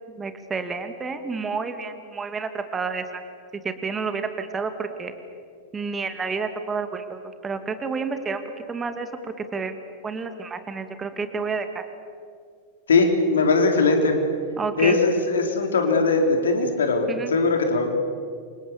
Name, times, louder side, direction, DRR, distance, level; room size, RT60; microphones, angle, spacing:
voice 1, 0.1-3.2 3.6-5.1 5.7-8.4 8.7-9.1 9.4-9.8 10.0-11.8 14.6-15.0 17.1-17.3, right 4 dB, 20° right, 8 dB, 2.2 m, -30 dB
voice 2, 12.9-14.1 14.8-17.9, left 3 dB, 65° left, 4 dB, 4.0 m, -20 dB
29.5 x 26.0 x 7.2 m, 2.2 s
figure-of-eight pair, 90°, 0 cm